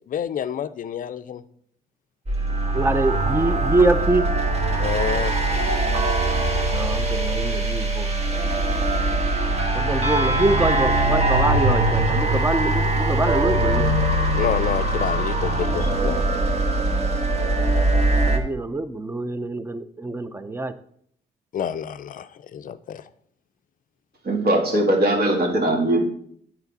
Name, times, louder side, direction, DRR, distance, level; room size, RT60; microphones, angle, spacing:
voice 1, 0.1-1.4 4.8-5.3 13.5-13.7 14.3-16.2 21.5-23.0, left 9 dB, 45° left, 13 dB, 0.5 m, -28 dB
sound 1, 2.3-18.4, right 2 dB, 30° right, 1.3 m, -22 dB
voice 2, 2.7-4.2 6.7-8.1 9.7-13.9 18.2-20.7, right 2 dB, 10° right, 13 dB, 0.5 m, -24 dB
voice 3, 24.3-26.0, right 1 dB, 55° right, 1 dB, 2.0 m, -20 dB
9.5 x 4.4 x 4.0 m, 0.65 s
cardioid pair, 90°, 20 cm